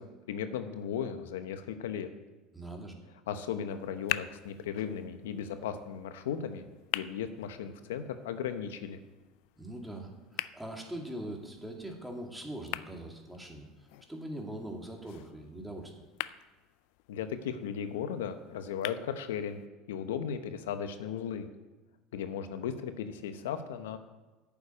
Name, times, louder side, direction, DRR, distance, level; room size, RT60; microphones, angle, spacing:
voice 1, 0.0-2.1 3.3-6.7 6.9-9.0 17.1-19.6 19.9-21.5 22.1-24.0, left 8 dB, 90° left, 9 dB, 0.8 m, -36 dB
voice 2, 2.5-3.0 9.6-15.9, right 1 dB, 5° right, 1 dB, 2.4 m, -42 dB
sound 1, 3.7-19.7, left 17 dB, 70° left, 0.4 m, -44 dB
9.6 x 7.2 x 8.4 m, 1.2 s
supercardioid pair, 95°, 0 cm